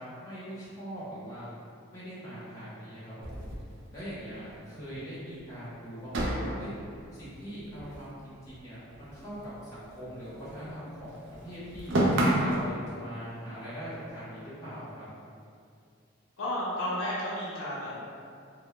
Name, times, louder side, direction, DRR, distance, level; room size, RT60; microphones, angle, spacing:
voice 1, 0.0-1.5 1.9-3.3 3.9-6.7 7.1-11.9 12.4-15.1, equal, 15° left, -12 dB, 0.8 m, -41 dB
sound 1, 3.2-4.6 4.9-5.0 5.3-5.4 6.1-8.6 8.8-10.7 10.9-12.7, right 1 dB, 65° right, 0.4 m, -31 dB
voice 2, 16.4-17.9, left 1 dB, 75° left, -7 dB, 0.5 m, -32 dB
2.2 x 2.0 x 2.9 m, 2.4 s
head